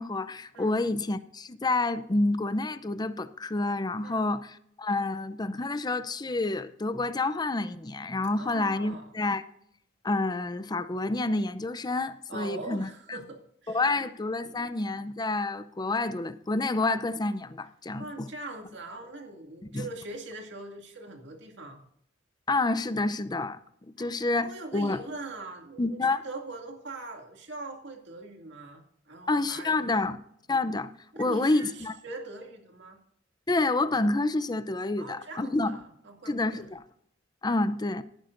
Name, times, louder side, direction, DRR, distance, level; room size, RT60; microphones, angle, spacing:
voice 1, 0.0-9.4 10.0-13.2 13.7-18.3 19.7-19.9 22.5-23.6 24.0-25.0 25.8-26.2 29.3-30.2 30.5-30.9 31.2-31.9 33.5-35.8 36.3-36.8 37.4-38.0, left 2 dB, 20° left, 0.5 m, -28 dB
voice 2, 8.3-9.1 12.3-14.1 18.0-21.8 24.0-24.1 24.4-30.0 31.1-33.0 35.0-36.7, right 2 dB, 65° right, 2.4 m, -42 dB
17.5 x 10.0 x 2.6 m
head